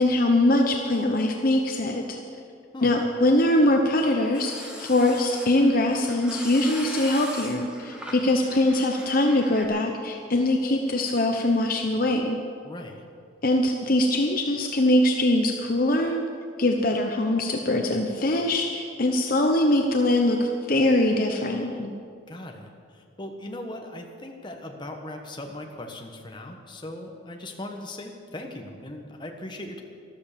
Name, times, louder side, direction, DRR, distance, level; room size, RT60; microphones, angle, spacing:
voice 1, 0.0-2.2 2.8-12.4 13.4-16.2 16.6-21.9, left 1 dB, 45° left, 3 dB, 0.9 m, -22 dB
sound 1, 3.7-9.7, equal, 5° right, 1.6 m, -41 dB
voice 2, 12.6-13.1 22.3-29.8, left 1 dB, 25° left, 2 dB, 1.3 m, -39 dB
13.5 x 12.5 x 6.9 m, 2.2 s
head